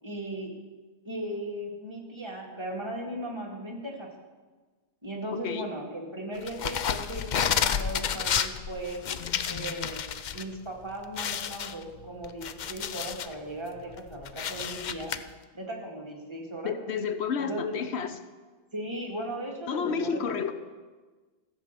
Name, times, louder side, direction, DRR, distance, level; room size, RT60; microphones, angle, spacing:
voice 1, 0.0-0.5 1.0-4.1 5.0-9.0 9.5-10.1 10.3-15.1 15.5-16.7 17.4-17.7 18.7-20.5, right 1 dB, 25° right, -2 dB, 2.2 m, -37 dB
sound 1, 6.5-10.4 10.8-10.9 11.2-13.3 13.8-15.2, left 8 dB, 55° left, 0.6 m, -30 dB
voice 2, 16.6-18.2 19.7-20.5, left 6 dB, 80° left, 10 dB, 1.0 m, -30 dB
14.5 x 7.5 x 6.8 m, 1.3 s
omnidirectional pair, 1.1 m